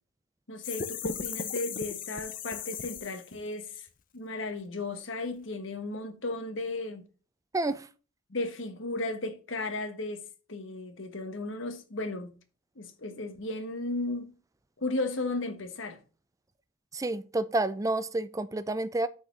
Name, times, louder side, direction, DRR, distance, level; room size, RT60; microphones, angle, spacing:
voice 1, 0.5-3.9 4.1-7.0 8.3-10.2 10.5-12.3 12.8-14.3 14.8-16.0, left 2 dB, 65° left, 1.2 m, -35 dB
sound 1, 0.6-3.4, left 7 dB, 40° left, 0.6 m, -37 dB
voice 2, 7.5-7.8 16.9-19.1, right 2 dB, 15° right, 0.4 m, -29 dB
6.4 x 4.2 x 6.0 m
head